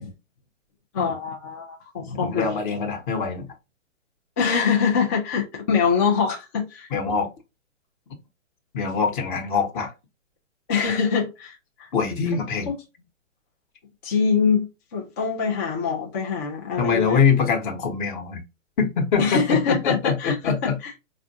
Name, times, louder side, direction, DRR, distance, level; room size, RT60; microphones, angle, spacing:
voice 1, 0.9-2.5 4.4-6.9 10.7-11.5 11.8-11.9 12.7-12.8 14.0-17.2 19.2-20.9, left 6 dB, 15° left, 0.4 m, -24 dB
voice 2, 2.2-3.5 6.9-7.3 8.7-9.9 11.9-12.7 16.8-18.4 18.8-20.8, left 6 dB, 40° left, 1.0 m, -23 dB
4.4 x 2.5 x 2.6 m
hypercardioid pair, 130°, 39 cm